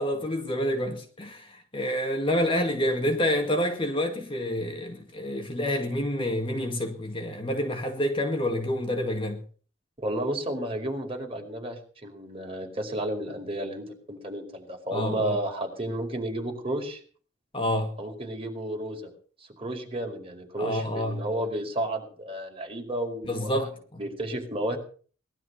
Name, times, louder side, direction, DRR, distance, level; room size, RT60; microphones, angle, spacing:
voice 1, 0.0-9.4 14.9-15.4 17.5-18.0 20.6-21.2 23.3-24.0, equal, 25° left, 2.1 m, -28 dB
voice 2, 10.0-17.0 18.0-19.1 19.6-23.5 24.0-24.8, right 1 dB, 30° right, 4.9 m, -32 dB
19.5 x 12.5 x 5.7 m
head